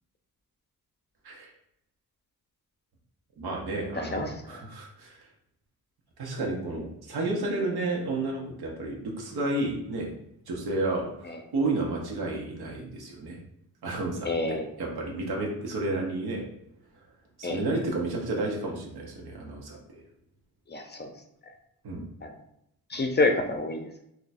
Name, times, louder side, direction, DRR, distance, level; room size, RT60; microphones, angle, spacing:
voice 1, 3.4-5.2 6.2-10.1 10.5-13.4 13.8-16.4 17.4-20.0 21.8-22.1 22.9-23.0, right 2 dB, 85° right, -1 dB, 1.1 m, -31 dB
voice 2, 3.9-4.3 11.3-11.4 14.2-14.7 17.4-17.6 20.7-21.1 22.2-22.3 22.9-23.9, left 2 dB, 30° left, 4 dB, 0.5 m, -28 dB
2.9 x 2.3 x 4.1 m, 0.78 s
cardioid pair, 90°, 37 cm